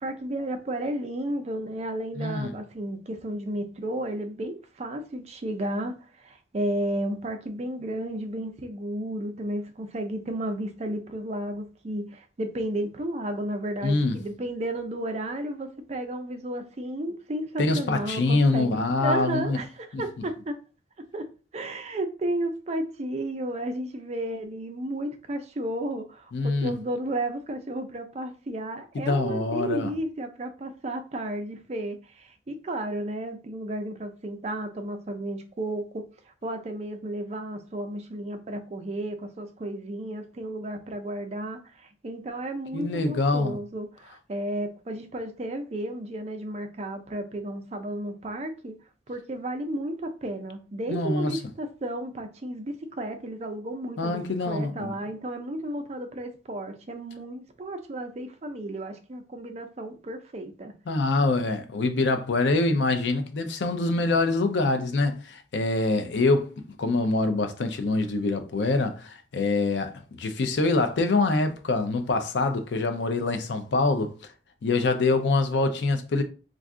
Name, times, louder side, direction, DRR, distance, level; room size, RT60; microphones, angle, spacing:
voice 1, 0.0-20.6 21.1-21.3 21.5-48.7 49.1-54.2 54.5-60.7, right 1 dB, 35° right, 0.4 m, -33 dB
voice 2, 2.2-2.5 13.8-14.1 17.6-19.6 19.9-20.0 26.3-26.7 29.0-29.9 42.7-43.5 50.9-51.4 54.0-54.9 60.9-74.1 74.6-76.2, left 3 dB, 75° left, 0.5 m, -25 dB
2.5 x 2.3 x 3.6 m
head